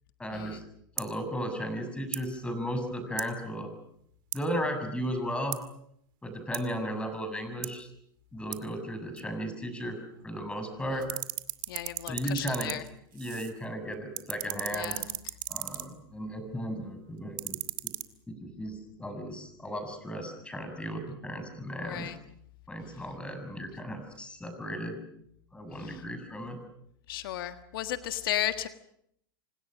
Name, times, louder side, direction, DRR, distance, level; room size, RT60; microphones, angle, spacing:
voice 1, 0.2-0.6 1.0-3.7 4.3-5.6 6.2-7.9 8.3-10.0 10.2-11.1 12.1-12.8 13.1-15.0 15.5-17.6 17.8-17.9 18.3-22.1 22.7-25.0 25.5-26.6, equal, 10° left, 8 dB, 6.8 m, -35 dB
sound 1, 1.0-1.1 2.0-2.3 3.2-3.3 4.3-4.5 5.5-5.7 6.5-6.7 7.6-7.8 8.5-8.6 9.2-9.3 10.0-10.7 10.9-13.6 13.9-15.9 17.2-18.0, right 19 dB, 70° right, 2.2 m, -38 dB
voice 2, 11.7-12.8 14.7-15.0 21.8-22.2 25.8-26.0 27.1-28.7, left 13 dB, 75° left, 9 dB, 1.6 m, -34 dB
28.5 x 25.5 x 6.4 m, 0.73 s
hypercardioid pair, 115°, 12 cm